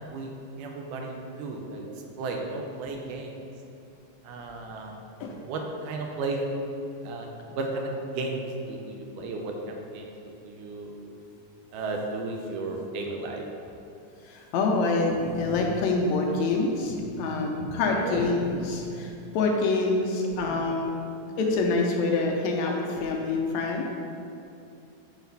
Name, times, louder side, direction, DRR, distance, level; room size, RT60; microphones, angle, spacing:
voice 1, 0.0-1.9 2.2-3.4 4.2-4.9 5.4-6.4 7.0-7.3 7.6-10.9 11.7-13.4 17.9-18.3, right 3 dB, 85° right, 1 dB, 2.2 m, -34 dB
voice 2, 14.3-21.0 21.4-23.9, left 3 dB, 80° left, 0 dB, 1.7 m, -26 dB
6.4 x 4.0 x 5.3 m, 2.7 s
omnidirectional pair, 3.6 m